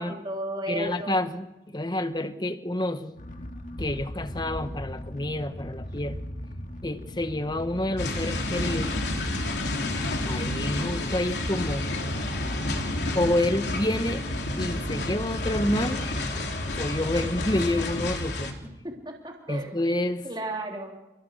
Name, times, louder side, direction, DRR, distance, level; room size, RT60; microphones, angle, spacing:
voice 1, 0.0-1.2 18.8-19.7 20.2-20.9, right 1 dB, 25° right, 3.4 m, -34 dB
voice 2, 0.7-3.1 3.8-6.2 6.8-8.9 10.2-11.9 13.1-14.2 14.6-16.0 16.8-18.5 19.5-20.3, left 1 dB, 25° left, 1.1 m, -28 dB
sound 1, 3.2-18.0, left 1 dB, 45° left, 1.8 m, -39 dB
sound 2, 8.0-18.5, left 1 dB, 80° left, 3.3 m, -30 dB
28.5 x 17.5 x 6.6 m
head